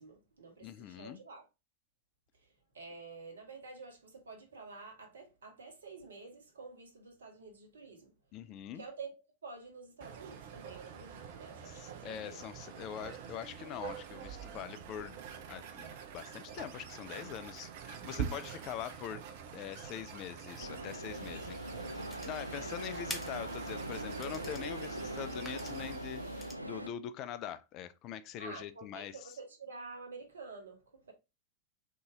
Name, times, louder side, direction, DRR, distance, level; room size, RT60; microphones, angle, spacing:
voice 1, 0.0-1.4 2.7-8.1 8.7-9.1 9.4-12.4 21.3-21.8 22.6-22.8 28.4-31.1, right 4 dB, 70° right, 1.2 m, -49 dB
voice 2, 0.6-1.2 8.3-8.8 11.7-15.2 15.5-19.2 19.5-21.6 22.3-29.2, left 10 dB, 40° left, 0.4 m, -43 dB
sound 1, 10.0-26.0, right 7 dB, 50° right, 0.6 m, -46 dB
sound 2, 20.6-26.9, right 1 dB, 85° right, 0.4 m, -42 dB
sound 3, 21.1-26.5, equal, 5° left, 0.8 m, -48 dB
3.9 x 2.8 x 3.6 m
figure-of-eight pair, 90°, 0 cm